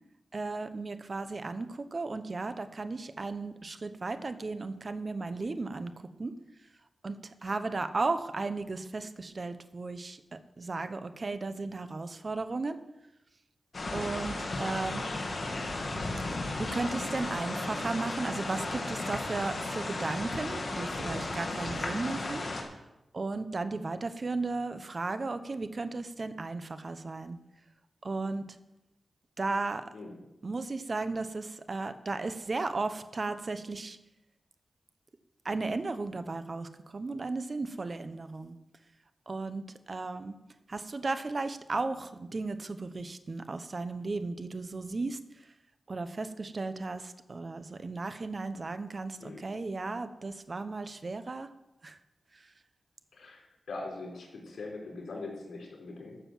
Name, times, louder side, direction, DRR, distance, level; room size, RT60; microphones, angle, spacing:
voice 1, 0.3-6.4 7.0-12.8 13.9-15.0 16.6-22.4 23.1-27.4 28.0-28.5 29.4-29.9 30.4-34.0 35.4-38.5 39.3-40.4 40.7-45.2 45.9-51.5 51.8-52.0, right 3 dB, 40° right, 11 dB, 1.0 m, -35 dB
sound 1, 13.7-22.6, left 2 dB, 50° left, 2.4 m, -34 dB
voice 2, 53.1-56.2, left 3 dB, 85° left, -1 dB, 4.3 m, -42 dB
13.0 x 6.8 x 7.5 m, 0.94 s
wide cardioid pair, 80°, 0 cm